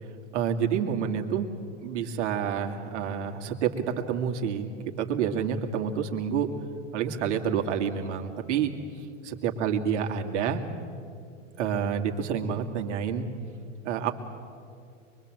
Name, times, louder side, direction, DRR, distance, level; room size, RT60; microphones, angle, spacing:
voice 1, 0.3-1.5 1.8-4.7 5.0-6.5 6.9-8.7 9.2-10.6 11.6-13.3 13.8-14.1, right 8 dB, 65° right, 3 dB, 2.5 m, -28 dB
23.5 x 23.0 x 7.7 m, 2.4 s
hypercardioid pair, 110°, 38 cm